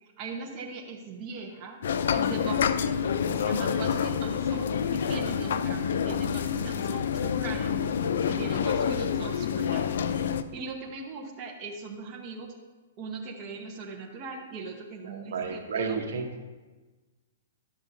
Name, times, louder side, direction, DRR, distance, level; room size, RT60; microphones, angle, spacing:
voice 1, 0.0-1.8 2.1-7.8 8.3-10.1 10.5-12.5 13.0-16.0, right 4 dB, 25° right, 1 dB, 0.8 m, -40 dB
sound 1, 1.8-10.4, left 7 dB, 70° left, 0.4 m, -27 dB
voice 2, 15.0-16.5, right 5 dB, 70° right, 4 dB, 1.0 m, -32 dB
11.0 x 7.0 x 2.7 m, 1.2 s
hypercardioid pair, 155°, 0 cm